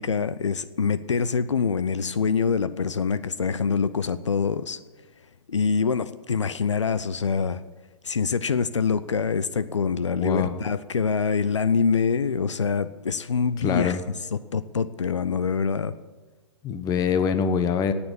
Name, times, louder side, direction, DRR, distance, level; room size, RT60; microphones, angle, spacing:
voice 1, 0.0-4.8 5.5-7.6 8.0-14.0 14.3-15.9, left 5 dB, 75° left, 14 dB, 0.7 m, -25 dB
voice 2, 10.2-10.6 13.6-14.0 16.6-17.9, left 7 dB, 25° left, 11 dB, 1.1 m, -24 dB
18.5 x 7.1 x 10.0 m, 1.3 s
figure-of-eight pair, 110°, 15 cm